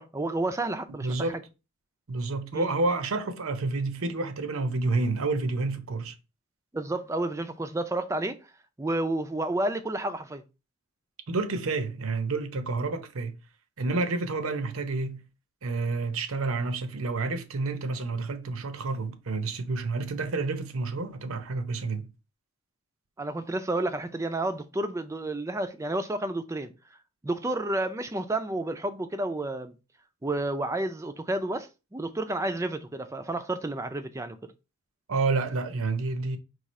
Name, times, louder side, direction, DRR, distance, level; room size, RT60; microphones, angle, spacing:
voice 1, 0.0-1.2 2.5-2.7 6.7-8.4 8.8-10.4 23.2-26.7 27.2-29.7 30.2-34.5, right 2 dB, 15° right, 0.3 m, -30 dB
voice 2, 1.0-1.4 2.1-6.1 11.3-13.3 13.8-15.2 15.6-22.1 35.1-36.4, right 3 dB, 75° right, 0.7 m, -29 dB
4.7 x 2.4 x 4.1 m
head